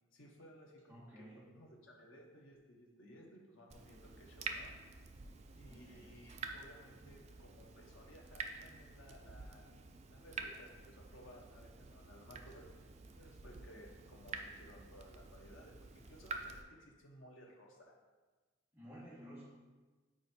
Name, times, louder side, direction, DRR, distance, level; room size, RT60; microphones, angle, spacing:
voice 1, 0.1-4.7 5.5-9.6 10.1-12.9 13.2-17.9, equal, 80° left, -1 dB, 1.0 m, -58 dB
voice 2, 0.9-1.5 5.7-6.1 18.7-19.4, equal, 10° right, -8 dB, 1.8 m, -53 dB
Water tap faucet / Drip, 3.7-16.6, right 4 dB, 35° right, 0.4 m, -49 dB
5.0 x 4.6 x 4.4 m, 1.3 s
head